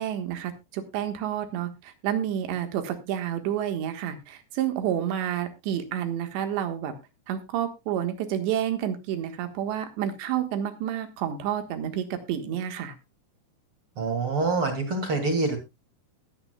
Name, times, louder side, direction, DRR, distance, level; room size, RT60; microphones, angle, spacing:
voice 1, 0.0-6.9 7.3-13.0, right 10 dB, 80° right, 7 dB, 3.6 m, -29 dB
voice 2, 14.0-15.6, right 3 dB, 40° right, 3 dB, 2.5 m, -26 dB
20.0 x 8.9 x 2.3 m, 0.24 s
omnidirectional pair, 5.0 m